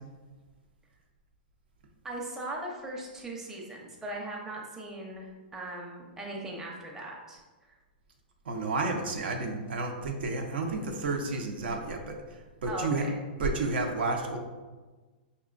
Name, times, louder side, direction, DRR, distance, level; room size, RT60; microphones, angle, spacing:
voice 1, 2.0-7.4 12.6-13.1, right 1 dB, 10° right, -3 dB, 0.6 m, -39 dB
voice 2, 8.5-12.1 12.6-13.0 13.4-14.4, right 3 dB, 75° right, 3 dB, 0.7 m, -31 dB
5.3 x 2.9 x 2.5 m, 1.3 s
hypercardioid pair, 145°, 6 cm